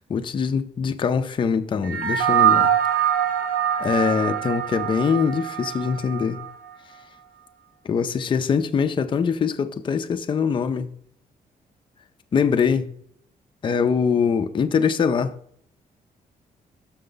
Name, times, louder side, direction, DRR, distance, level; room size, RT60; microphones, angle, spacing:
voice 1, 0.1-2.7 3.8-6.4 7.8-10.9 12.3-12.9 13.6-15.3, left 6 dB, 35° left, 0.5 m, -23 dB
sound 1, 1.8-6.5, right 10 dB, 75° right, 0.8 m, -23 dB
6.6 x 6.1 x 3.9 m
cardioid pair, 135°, 15 cm